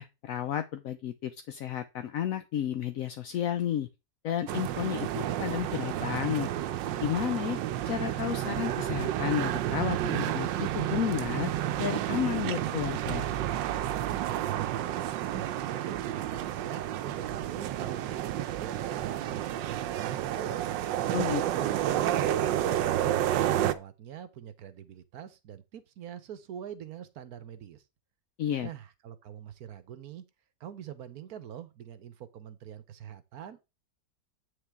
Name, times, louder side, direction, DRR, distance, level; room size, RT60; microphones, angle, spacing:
voice 1, 0.0-3.9 4.2-6.5 7.0-7.6 7.9-11.5 11.8-13.3 21.1-21.4 28.4-28.7, left 10 dB, 65° left, 0.9 m, -32 dB
sound 1, 4.5-23.7, right 12 dB, 85° right, 1.3 m, -30 dB
voice 2, 14.5-20.7 21.4-27.8 28.6-30.2 30.6-33.6, right 9 dB, 65° right, 1.2 m, -44 dB
8.8 x 6.5 x 3.5 m
omnidirectional pair, 1.9 m